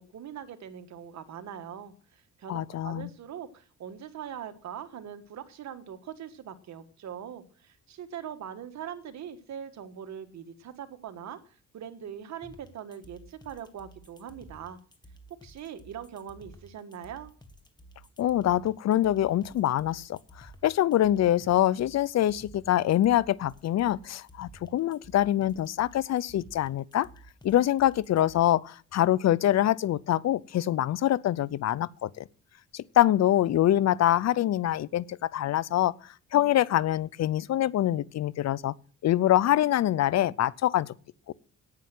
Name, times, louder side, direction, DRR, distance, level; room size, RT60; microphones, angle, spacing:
voice 1, 0.0-11.4 11.7-14.8 15.4-17.3, right 9 dB, 65° right, 1.5 m, -42 dB
voice 2, 2.5-3.1 18.2-27.1 27.4-32.2 32.7-35.9 36.3-38.7 39.0-40.9 41.3-41.4, left 12 dB, 60° left, 0.6 m, -25 dB
sound 1, 12.4-28.4, right 1 dB, 15° left, 1.8 m, -53 dB
9.7 x 9.2 x 7.6 m
cardioid pair, 90°, 30 cm